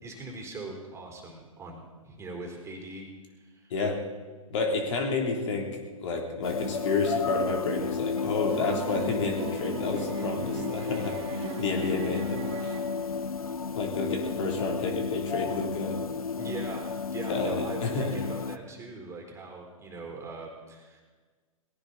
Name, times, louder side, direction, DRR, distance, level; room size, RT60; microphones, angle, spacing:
voice 1, 0.0-3.1 3.3-3.7 16.4-21.0, right 3 dB, 15° right, 1 dB, 3.8 m, -41 dB
voice 2, 4.5-5.7 6.0-12.8 13.8-16.0 17.3-18.1, left 3 dB, 55° left, 2 dB, 3.2 m, -30 dB
sound 1, 6.4-18.6, left 5 dB, 85° left, 0.7 m, -33 dB
sound 2, 8.5-13.4, right 7 dB, 50° right, 2.0 m, -39 dB
19.0 x 16.5 x 4.1 m, 1.4 s
hypercardioid pair, 115°, 18 cm